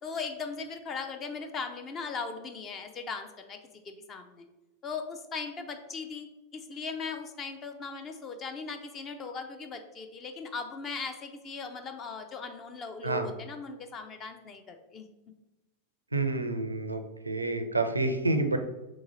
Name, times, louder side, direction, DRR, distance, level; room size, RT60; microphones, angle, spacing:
voice 1, 0.0-3.6 3.8-4.4 4.8-15.1, left 4 dB, 25° left, 6 dB, 0.5 m, -38 dB
voice 2, 16.1-18.6, right 2 dB, 80° right, 8 dB, 0.4 m, -29 dB
3.9 x 3.0 x 3.8 m, 1.0 s
figure-of-eight pair, 90°, 0 cm